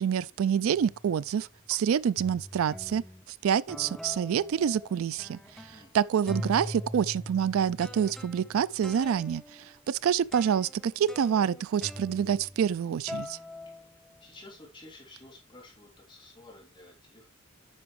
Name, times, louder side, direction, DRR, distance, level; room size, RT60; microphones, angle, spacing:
voice 1, 0.0-3.0 3.4-5.4 5.9-9.4 9.9-13.4, right 8 dB, 80° right, 0.3 m, -27 dB
sound 1, 0.7-1.1 1.7-1.8 2.2-3.2 3.7-5.9 6.3-12.8 13.1-14.5, left 1 dB, ahead, 0.6 m, -42 dB
voice 2, 5.7-6.2 13.6-13.9 14.2-17.3, left 2 dB, 25° left, 3.2 m, -52 dB
9.4 x 6.1 x 3.2 m
head